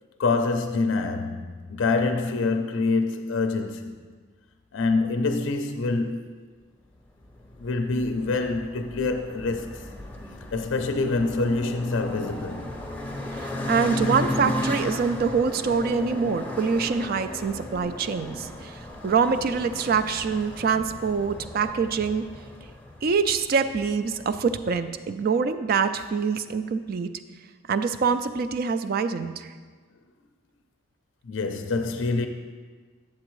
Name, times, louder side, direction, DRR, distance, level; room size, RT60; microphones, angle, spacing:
voice 1, 0.2-4.0 4.7-6.2 7.6-9.9 10.5-12.7 31.2-32.3, left 3 dB, 65° left, 0.4 m, -26 dB
sound 1, 7.2-24.7, left 1 dB, 10° left, 0.6 m, -35 dB
voice 2, 13.4-22.2 23.0-27.1 27.7-29.5, right 5 dB, 45° right, 0.3 m, -25 dB
8.6 x 7.4 x 3.1 m
head